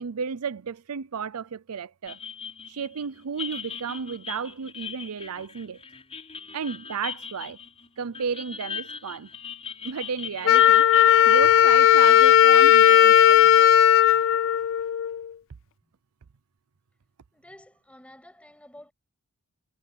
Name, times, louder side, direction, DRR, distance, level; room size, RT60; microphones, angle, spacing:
voice 1, 0.0-2.2 2.7-5.8 6.5-7.6 8.0-9.3 9.8-10.8 11.3-13.5, right 6 dB, 85° right, 0.6 m, -33 dB
Teks Sharp Twangy Guitar Tremelo, 2.1-13.8, left 6 dB, 25° left, 6.4 m, -39 dB
Wind instrument woodwind instrument, 10.5-15.3, left 10 dB, 60° left, 0.4 m, -16 dB
voice 2, 17.3-18.9, left 1 dB, 5° left, 7.2 m, -50 dB
head